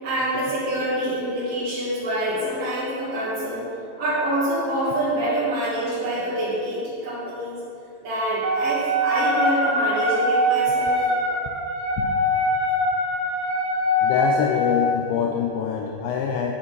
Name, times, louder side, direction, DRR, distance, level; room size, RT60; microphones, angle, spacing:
voice 1, 0.0-3.6 4.0-7.6 8.0-11.0, right 1 dB, 40° right, -12 dB, 2.4 m, -26 dB
Wind instrument woodwind instrument, 8.4-14.9, left 1 dB, 75° right, 3.6 m, -23 dB
voice 2, 14.0-16.5, left 7 dB, 85° left, 1 dB, 2.6 m, -24 dB
10.5 x 5.2 x 5.4 m, 2.6 s
omnidirectional pair, 5.7 m